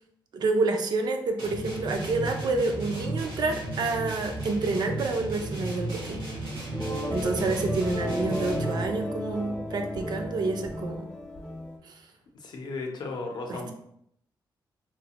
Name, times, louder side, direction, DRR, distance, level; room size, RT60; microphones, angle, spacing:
voice 1, 0.3-6.2 7.1-11.1 11.8-11.9 13.5-13.7, right 3 dB, 60° right, 4 dB, 0.4 m, -28 dB
sound 1, 1.4-8.9, right 2 dB, 90° right, 1.1 m, -34 dB
sound 2, 6.7-11.8, left 1 dB, 10° left, 0.4 m, -34 dB
voice 2, 12.4-13.7, left 3 dB, 60° left, 2 dB, 0.5 m, -35 dB
3.1 x 2.1 x 2.8 m, 0.71 s
wide cardioid pair, 150°, 8 cm